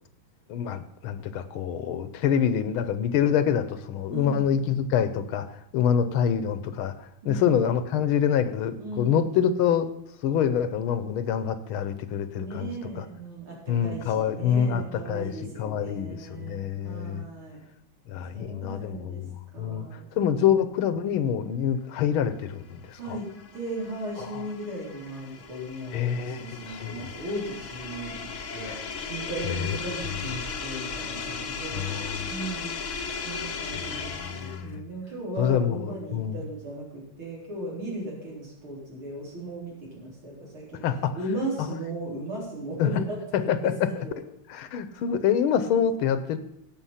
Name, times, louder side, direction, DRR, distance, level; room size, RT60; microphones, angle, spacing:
voice 1, 0.5-6.9 7.2-9.9 10.2-12.7 13.0-13.1 13.7-15.3 15.6-17.2 18.1-19.9 20.1-23.2 24.2-24.4 25.9-27.1 28.6-28.8 29.4-29.8 31.7-32.3 33.7-34.9 35.4-36.4 40.8-41.2 42.8-42.9 43.3-44.0 44.5-46.4, left 8 dB, 85° left, 12 dB, 1.7 m, -26 dB
voice 2, 4.1-4.5 7.2-7.5 8.8-9.2 12.2-17.6 18.3-19.2 19.5-20.5 23.0-23.3 23.5-28.8 29.1-31.9 32.3-32.8 33.2-40.8 41.1-43.0 43.3-43.7 44.0-44.2, right 1 dB, 85° right, -4 dB, 4.9 m, -37 dB
sound 1, 22.9-34.8, left 5 dB, 45° left, 1.1 m, -36 dB
16.5 x 6.4 x 5.7 m, 0.75 s
omnidirectional pair, 2.3 m